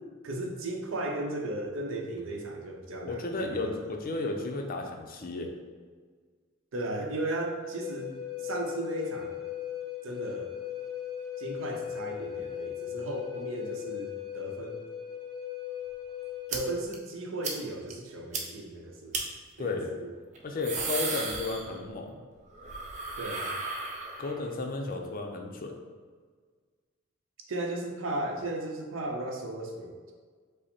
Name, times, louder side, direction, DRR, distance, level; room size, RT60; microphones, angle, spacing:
voice 1, 0.2-3.8 6.7-9.4 10.0-10.5 11.4-14.8 16.5-19.2 19.6-20.1 23.2-23.5 27.5-30.1, right 2 dB, 80° right, 2 dB, 0.7 m, -36 dB
voice 2, 3.0-5.5 19.6-19.9 20.4-22.2 24.2-25.7, left 3 dB, 45° left, 2 dB, 0.5 m, -33 dB
Wind instrument woodwind instrument, 7.6-16.9, left 10 dB, 20° right, 0.9 m, -38 dB
sound 1, 16.5-16.6 16.9-17.0 17.4-17.6 17.9-18.0 18.3-18.4 19.1-19.2 20.4-22.0 22.3-24.5, right 3 dB, 35° right, 0.6 m, -34 dB
5.3 x 2.1 x 4.3 m, 1.6 s
head